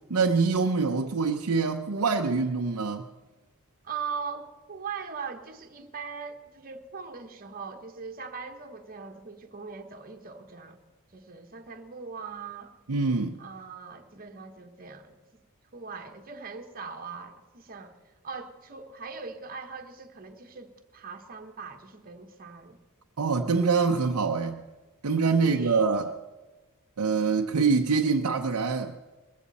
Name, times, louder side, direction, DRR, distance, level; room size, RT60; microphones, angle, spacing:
voice 1, 0.1-3.1 12.9-13.4 23.2-24.6 25.0-26.2 27.0-29.0, right 4 dB, 90° right, 0.7 m, -25 dB
voice 2, 3.8-10.8 11.1-12.7 13.4-15.4 15.7-18.0 18.2-22.8 25.4-26.0, right 5 dB, 40° right, 1.3 m, -40 dB
21.0 x 15.5 x 4.1 m
head